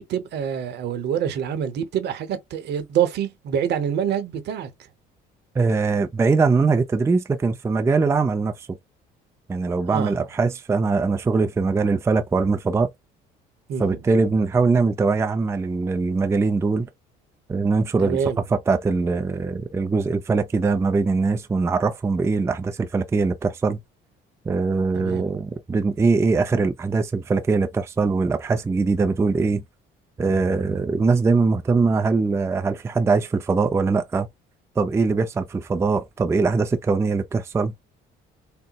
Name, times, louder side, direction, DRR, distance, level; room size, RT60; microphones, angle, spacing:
voice 1, 0.0-4.7 9.9-10.3 13.7-13.9 18.0-18.4 25.0-25.3, right 8 dB, 65° right, 0.8 m, -26 dB
voice 2, 5.6-8.7 9.5-12.9 13.8-16.9 17.5-18.2 18.5-23.8 24.5-29.6 30.2-34.3 34.8-37.7, right 4 dB, 15° right, 0.4 m, -22 dB
3.8 x 2.1 x 2.2 m
cardioid pair, 95°, 19 cm